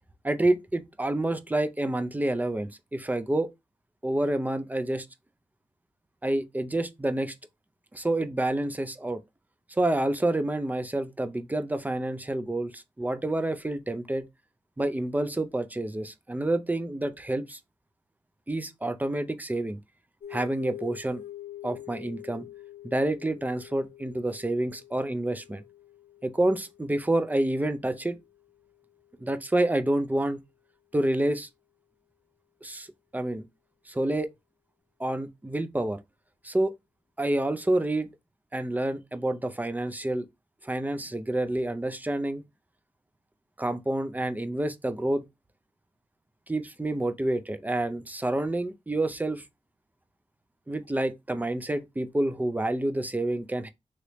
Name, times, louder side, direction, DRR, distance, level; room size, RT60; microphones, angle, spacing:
voice 1, 0.2-3.5 4.0-5.1 6.2-7.3 7.9-9.2 9.7-14.3 14.8-17.6 18.5-19.8 20.3-21.2 21.6-22.5 22.8-25.6 26.2-28.2 29.2-30.4 30.9-31.5 32.6-32.9 33.1-33.4 33.9-34.3 35.0-36.0 36.4-36.7 37.2-38.1 38.5-40.3 40.6-42.4 43.6-45.2 46.5-49.4 50.7-53.7, right 1 dB, 15° right, 0.4 m, -28 dB
sound 1, 20.2-29.1, left 13 dB, 80° left, 0.7 m, -47 dB
3.2 x 3.0 x 2.9 m
wide cardioid pair, 85°, 12 cm